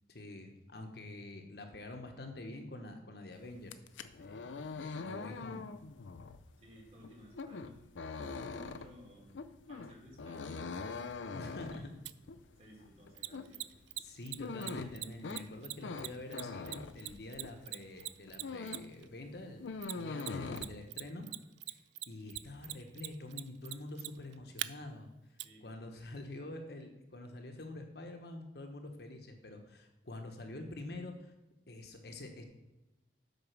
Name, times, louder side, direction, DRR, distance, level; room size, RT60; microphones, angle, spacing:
voice 1, 0.1-5.7 11.3-11.9 14.0-21.3 21.7-21.8 22.1-25.1 25.6-31.3 31.7-32.4, left 2 dB, 60° left, 4 dB, 1.1 m, -46 dB
sound 1, 3.6-17.7 18.0-19.0 19.2-20.7, left 4 dB, 85° left, 0.5 m, -43 dB
voice 2, 6.6-7.8 8.2-10.7 11.5-11.9 12.3-13.7 20.4-20.5 21.2-21.4 25.4-25.9, equal, 35° right, -1 dB, 2.5 m, -57 dB
Mechanisms, 12.0-12.1 13.2-19.0 19.8-20.7 20.9-24.7 25.4-25.5, right 17 dB, 70° right, 0.3 m, -40 dB
8.1 x 5.2 x 6.0 m, 0.99 s
head